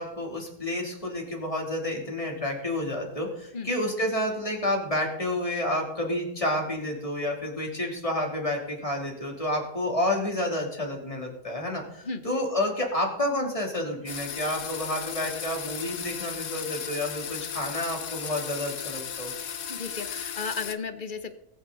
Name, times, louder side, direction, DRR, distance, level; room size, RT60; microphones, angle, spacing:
voice 1, 0.0-19.3, left 1 dB, 25° left, -1 dB, 3.0 m, -30 dB
sound 1, 14.1-20.7, left 8 dB, 80° left, 1.3 m, -36 dB
voice 2, 19.7-21.3, left 4 dB, 45° left, 9 dB, 1.1 m, -34 dB
20.5 x 9.3 x 4.0 m, 0.78 s
omnidirectional pair, 1.3 m